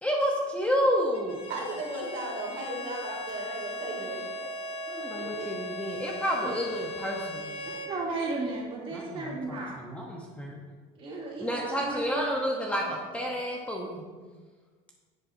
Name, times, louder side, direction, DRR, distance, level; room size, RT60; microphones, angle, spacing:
voice 1, 0.0-1.4 4.9-7.7 8.9-10.6 11.4-14.0, equal, 10° left, -1 dB, 0.9 m, -30 dB
Bowed string instrument, 1.1-8.0, left 2 dB, 35° left, 1.1 m, -39 dB
voice 2, 1.5-4.5 5.3-5.5, right 2 dB, 55° right, -1 dB, 2.5 m, -36 dB
Hammer, 3.3-9.5, right 4 dB, 80° right, 2.6 m, -44 dB
voice 3, 7.7-9.8 10.9-12.3, right 3 dB, 35° right, -4 dB, 2.7 m, -35 dB
10.0 x 7.9 x 2.7 m, 1.4 s
cardioid pair, 140°, 16 cm